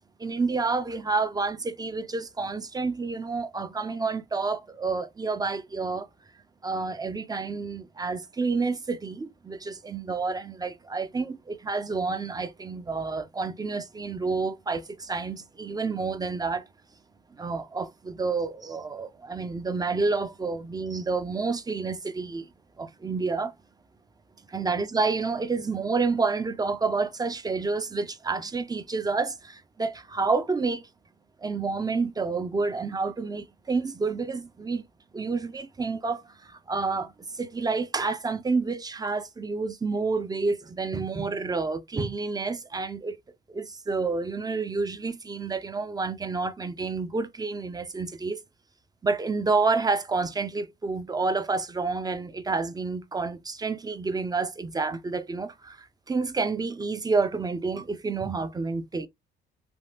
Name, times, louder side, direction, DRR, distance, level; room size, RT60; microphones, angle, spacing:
voice 1, 0.2-6.1 6.6-16.6 17.4-22.5 22.8-23.5 24.5-30.9 31.4-34.8 35.1-43.2 43.5-48.4 49.0-59.1, right 4 dB, 20° right, 0.5 m, -29 dB
3.4 x 2.3 x 2.7 m
cardioid pair, 90°, 20 cm